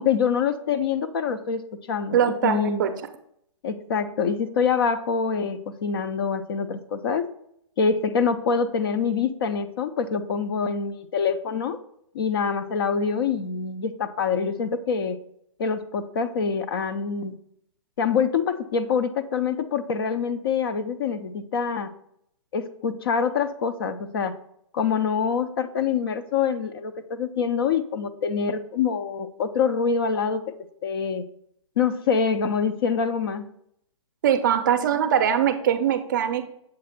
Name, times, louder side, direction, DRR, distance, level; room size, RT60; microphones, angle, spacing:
voice 1, 0.0-2.8 3.6-7.3 7.8-11.8 12.1-15.2 15.6-17.4 18.0-21.9 22.5-24.3 24.7-30.4 30.8-31.2 31.8-33.4, left 6 dB, 45° left, 11 dB, 0.4 m, -25 dB
voice 2, 2.1-2.9 34.2-36.5, right 9 dB, 35° right, 9 dB, 0.5 m, -22 dB
7.4 x 2.5 x 5.7 m, 0.73 s
hypercardioid pair, 165°, 17 cm